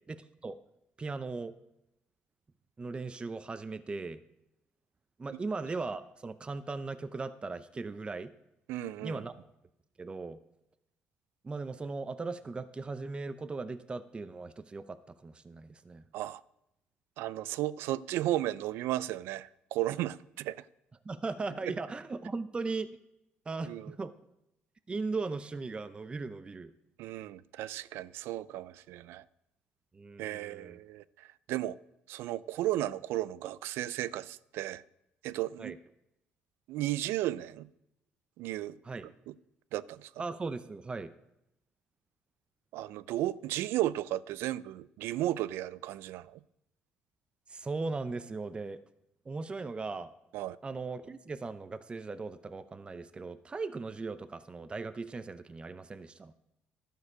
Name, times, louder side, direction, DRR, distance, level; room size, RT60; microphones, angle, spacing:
voice 1, 0.1-0.5 1.0-1.5 2.8-4.2 5.2-8.3 9.0-9.3 10.0-10.4 11.4-16.0 21.0-22.9 23.5-24.1 24.9-26.7 29.9-30.8 35.6-35.8 38.8-39.1 40.2-41.1 47.5-48.8 49.3-50.1 50.6-56.3, right 3 dB, 25° right, 11 dB, 0.6 m, -38 dB
voice 2, 8.7-9.2 16.1-16.4 17.2-20.6 21.7-21.8 23.7-23.9 27.0-29.2 30.2-31.8 32.1-34.8 35.2-35.7 36.7-37.7 38.4-38.8 39.3-39.4 39.7-40.1 42.7-46.4 50.3-50.6, right 14 dB, 80° right, 18 dB, 0.4 m, -34 dB
12.0 x 6.4 x 4.9 m, 0.85 s
supercardioid pair, 75°, 4 cm